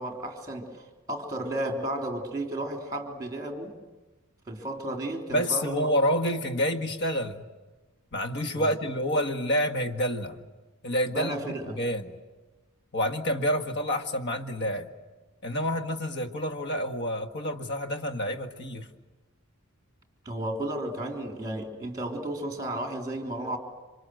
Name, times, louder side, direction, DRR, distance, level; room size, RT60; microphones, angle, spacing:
voice 1, 0.0-3.8 4.5-5.9 8.5-8.7 11.1-11.8 20.3-23.6, right 1 dB, 15° right, 3 dB, 3.5 m, -33 dB
voice 2, 5.3-7.4 8.1-10.4 10.8-11.4 11.8-12.2 12.9-14.9 15.4-18.9, equal, 50° left, 5 dB, 1.9 m, -28 dB
28.0 x 25.5 x 7.9 m, 1.2 s
head